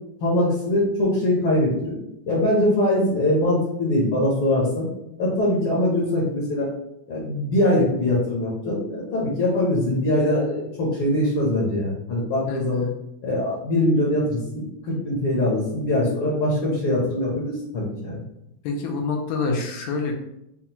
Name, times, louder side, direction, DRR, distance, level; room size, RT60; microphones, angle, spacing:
voice 1, 0.2-1.9 2.3-4.9 5.2-6.7 7.1-12.8 13.2-18.2, left 1 dB, 60° left, -4 dB, 1.5 m, -22 dB
voice 2, 12.5-12.9 18.6-20.1, left 4 dB, 85° left, 1 dB, 2.2 m, -27 dB
5.6 x 2.3 x 2.9 m, 0.82 s
omnidirectional pair, 3.4 m